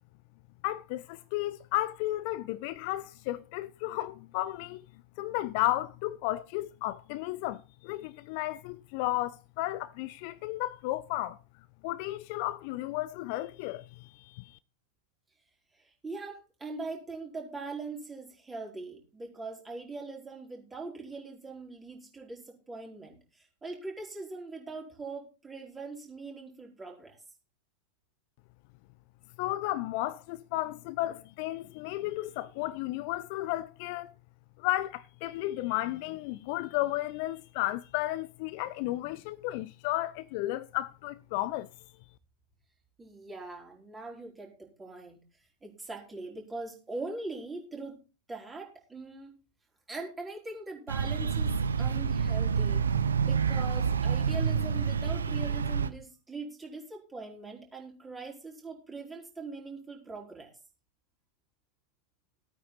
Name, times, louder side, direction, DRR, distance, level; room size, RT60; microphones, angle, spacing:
voice 1, 0.6-4.8 5.2-11.4 11.8-14.6 29.4-34.1 34.6-41.7, left 16 dB, 45° left, 0.5 m, -33 dB
voice 2, 15.8-27.2 43.0-45.2 45.6-48.0 48.3-49.3 49.9-51.5 51.8-60.5, right 3 dB, 10° right, 4.8 m, -41 dB
sound 1, 50.9-55.9, right 6 dB, 70° right, 0.8 m, -28 dB
15.5 x 9.2 x 4.1 m
figure-of-eight pair, 90°, 0 cm